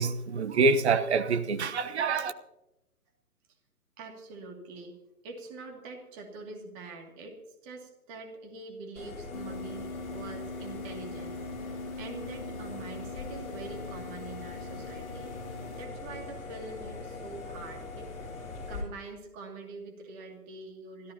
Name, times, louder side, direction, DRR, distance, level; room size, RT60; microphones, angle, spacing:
voice 1, 0.0-2.3, right 4 dB, 45° right, 1.1 m, -26 dB
voice 2, 4.0-5.0 5.2-15.3 15.8-18.1 18.4-21.1, right 3 dB, 20° right, 2.4 m, -45 dB
sound 1, 9.0-18.8, left 3 dB, 15° left, 6.7 m, -42 dB
sound 2, 9.3-15.9, left 2 dB, 60° left, 2.4 m, -42 dB
26.0 x 14.5 x 2.9 m
figure-of-eight pair, 145°, 47 cm